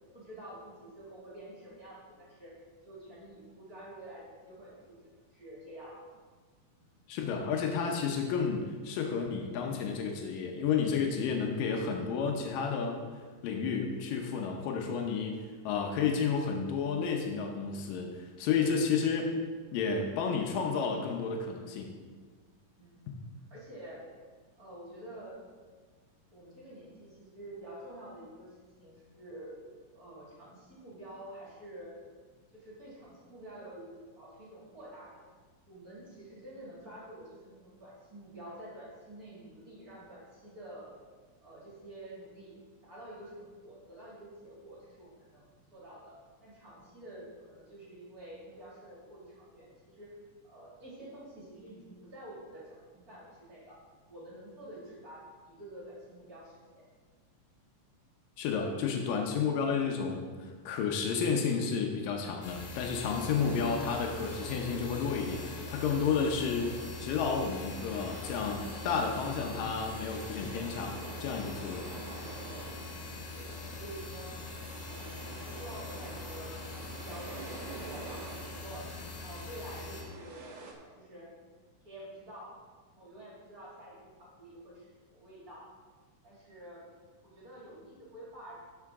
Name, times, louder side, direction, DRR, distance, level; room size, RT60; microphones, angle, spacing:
voice 1, 0.1-2.5 2.8-5.0 5.3-6.0 22.8-23.1 23.5-24.0 24.6-25.4 26.3-28.5 28.8-29.6 29.9-32.0 32.5-35.2 35.7-40.9 41.4-46.2 46.4-50.2 50.4-53.8 54.1-56.8 72.8-74.4 75.6-76.6 76.9-81.3 81.8-82.5 82.9-85.7 86.2-86.8 87.2-88.6, right 1 dB, 30° right, -6 dB, 2.5 m, -48 dB
voice 2, 7.1-19.3 19.7-21.9 58.4-71.9, left 6 dB, 90° left, 1 dB, 2.5 m, -31 dB
sound 1, 62.4-80.0, left 4 dB, 65° left, 2.3 m, -43 dB
sound 2, 63.1-80.7, right 4 dB, 65° right, 1.9 m, -47 dB
12.5 x 5.6 x 3.6 m, 1.5 s
omnidirectional pair, 3.8 m